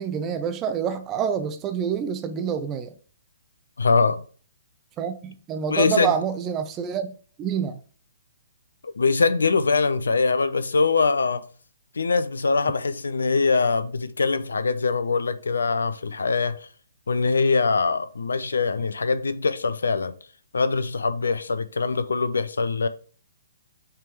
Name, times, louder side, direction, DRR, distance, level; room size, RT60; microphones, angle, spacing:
voice 1, 0.0-2.9 5.0-7.1 7.4-7.8, right 7 dB, 25° right, 0.7 m, -27 dB
voice 2, 3.8-4.2 5.7-6.1 8.8-11.4 12.0-16.7 17.1-20.1 20.5-22.9, left 4 dB, 75° left, 0.6 m, -23 dB
5.8 x 3.5 x 4.6 m
figure-of-eight pair, 130°, 0 cm